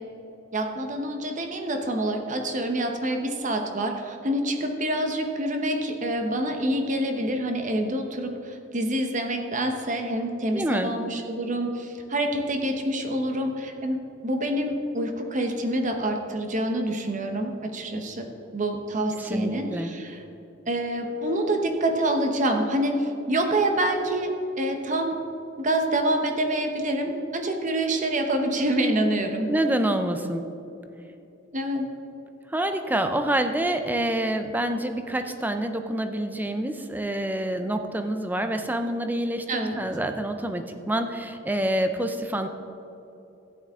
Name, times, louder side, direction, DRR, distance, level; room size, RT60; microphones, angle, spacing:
voice 1, 0.5-14.0 14.2-20.2 20.7-25.2 25.6-29.5 31.5-31.9 39.5-39.8, right 1 dB, 40° right, 4 dB, 1.0 m, -27 dB
voice 2, 10.5-10.9 19.2-19.9 29.5-30.5 32.5-42.5, right 1 dB, 10° right, 7 dB, 0.5 m, -27 dB
13.5 x 9.1 x 3.7 m, 2.9 s
head